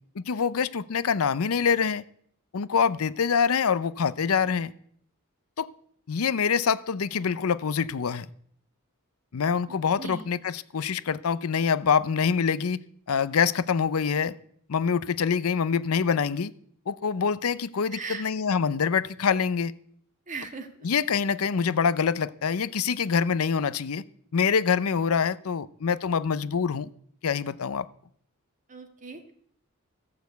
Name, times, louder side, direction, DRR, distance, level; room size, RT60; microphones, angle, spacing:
voice 1, 0.2-2.0 2.5-4.7 5.6-5.7 6.1-8.3 9.3-12.8 13.1-14.3 14.7-16.5 16.9-19.7 20.8-24.0 24.3-26.9 27.2-27.9, left 6 dB, 80° left, 0.6 m, -25 dB
voice 2, 9.7-10.2 17.9-18.3 20.3-20.7 28.7-29.3, right 4 dB, 35° right, 1.8 m, -38 dB
14.5 x 6.8 x 8.1 m
head